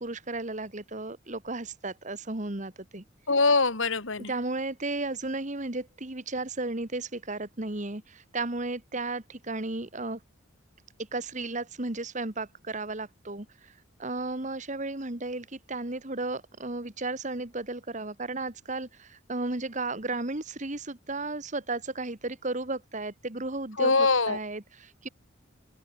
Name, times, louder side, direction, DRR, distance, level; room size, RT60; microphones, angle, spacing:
voice 1, 0.0-3.0 4.3-10.2 11.1-13.7 14.0-25.1, right 2 dB, 40° right, 1.9 m, -34 dB
voice 2, 3.3-4.3 23.8-24.4, left 3 dB, 80° left, 2.7 m, -23 dB
head